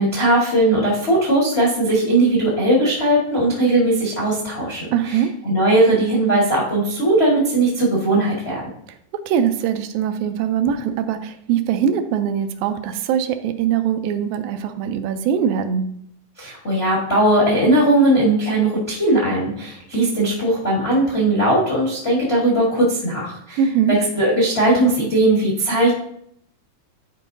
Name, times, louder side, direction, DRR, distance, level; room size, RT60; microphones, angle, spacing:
voice 1, 0.0-5.2 5.4-8.6 16.4-23.6 24.1-25.9, right 1 dB, 80° left, -4 dB, 0.5 m, -18 dB
voice 2, 4.9-5.3 9.1-15.9 23.6-24.0, right 8 dB, 90° right, 8 dB, 2.3 m, -22 dB
11.0 x 4.5 x 2.6 m, 0.71 s
omnidirectional pair, 3.9 m